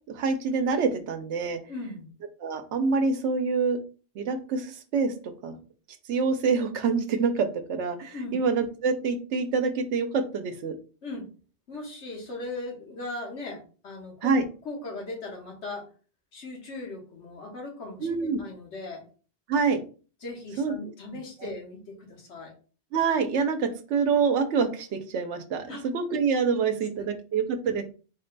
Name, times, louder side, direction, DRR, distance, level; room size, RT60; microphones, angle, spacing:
voice 1, 0.1-1.6 2.4-3.8 4.2-5.1 5.4-5.6 6.1-10.7 14.2-14.5 18.0-18.4 19.5-19.8 20.6-20.8 21.4-21.5 22.9-27.8, right 5 dB, 85° right, 8 dB, 0.9 m, -26 dB
voice 2, 1.7-2.1 8.1-8.4 11.0-11.3 11.7-14.4 14.6-15.9 16.3-19.1 20.2-22.5 25.7-25.8 26.5-26.6 27.0-27.1, left 2 dB, 80° left, 0 dB, 1.5 m, -38 dB
4.0 x 2.2 x 3.8 m, 0.37 s
omnidirectional pair, 1.2 m